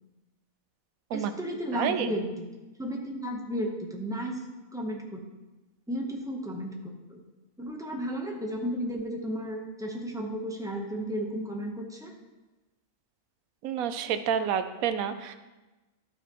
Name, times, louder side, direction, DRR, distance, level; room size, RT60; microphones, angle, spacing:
voice 1, 1.1-2.3 2.8-4.4 4.7-5.2 5.9-7.2 7.6-12.1, equal, 5° right, 0 dB, 0.7 m, -33 dB
voice 2, 1.7-2.1 13.6-15.3, right 8 dB, 90° right, 10 dB, 1.0 m, -29 dB
12.5 x 4.9 x 3.0 m, 1.1 s
omnidirectional pair, 1.4 m